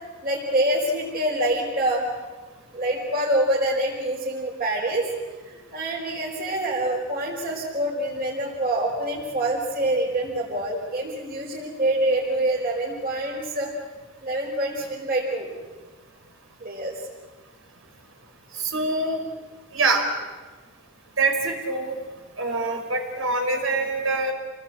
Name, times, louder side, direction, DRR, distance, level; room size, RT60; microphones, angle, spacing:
voice 1, 0.2-2.0 2.7-5.0 5.4-13.7 14.2-15.5 16.6-16.9, right 1 dB, 45° right, -4 dB, 5.1 m, -26 dB
voice 2, 18.6-19.2 19.7-20.1 21.2-22.0 22.4-24.3, right 3 dB, 75° right, 3 dB, 5.2 m, -24 dB
30.0 x 19.0 x 8.8 m, 1.3 s
head